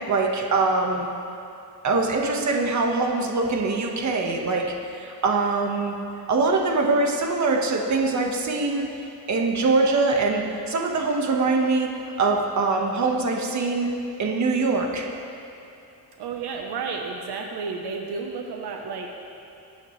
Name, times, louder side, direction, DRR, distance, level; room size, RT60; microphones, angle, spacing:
voice 1, 0.1-1.1 1.8-5.9 6.3-8.9 9.3-13.9 14.2-15.2, right 3 dB, 45° right, 0 dB, 1.7 m, -23 dB
voice 2, 16.2-19.1, right 5 dB, 80° right, 2 dB, 1.2 m, -32 dB
23.5 x 9.1 x 3.4 m, 2.6 s
cardioid pair, 125°, 39 cm